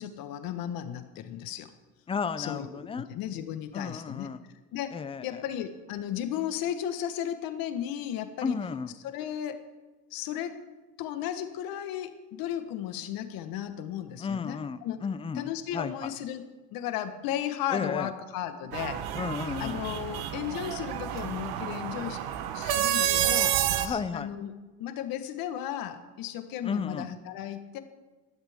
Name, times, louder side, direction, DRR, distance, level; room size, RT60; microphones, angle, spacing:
voice 1, 0.0-1.7 2.4-4.3 4.7-8.6 9.0-9.6 10.1-10.6 11.0-15.0 15.4-16.4 16.7-19.2 19.6-22.2 22.5-23.6 23.8-24.5 24.8-27.8, left 10 dB, 65° left, 9 dB, 1.4 m, -35 dB
voice 2, 2.1-3.1 3.7-4.4 4.9-5.4 8.4-8.9 14.2-16.1 17.7-18.1 19.1-19.9 23.8-24.3 26.6-27.1, left 5 dB, 15° left, 13 dB, 0.5 m, -33 dB
sound 1, 18.7-23.9, right 11 dB, 75° right, 1.2 m, -29 dB
18.0 x 12.0 x 3.6 m, 1.2 s
cardioid pair, 140°, 37 cm